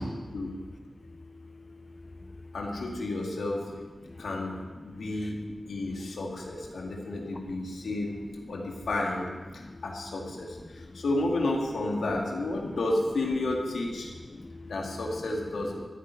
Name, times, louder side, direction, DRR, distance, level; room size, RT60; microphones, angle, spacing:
voice 1, 0.1-0.5 1.7-2.5 4.1-4.2 5.2-5.3 9.6-9.8 10.9-11.0 14.3-14.7, left 1 dB, 45° left, 8 dB, 0.6 m, -43 dB
voice 2, 2.5-3.7 4.2-4.6 4.8-8.2 8.5-9.3 9.5-14.1 14.6-15.9, left 2 dB, 90° left, 0 dB, 2.2 m, -31 dB
14.0 x 9.3 x 5.7 m, 1.4 s
cardioid pair, 40°, 0 cm